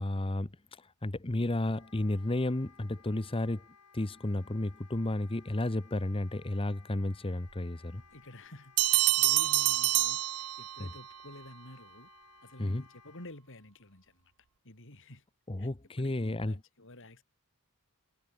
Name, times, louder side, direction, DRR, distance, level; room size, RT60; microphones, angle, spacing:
voice 1, 0.0-3.7 3.9-8.0 10.8-10.9 12.6-12.8 15.5-16.6, left 1 dB, 25° left, 0.9 m, -32 dB
Wind instrument woodwind instrument, 1.6-13.3, left 6 dB, 85° left, 5.7 m, -60 dB
voice 2, 8.1-12.1 12.4-14.3 14.6-15.2 15.6-15.7 16.0-17.2, left 1 dB, 60° left, 5.9 m, -51 dB
sound 1, 8.8-11.0, right 18 dB, 90° right, 0.6 m, -27 dB
head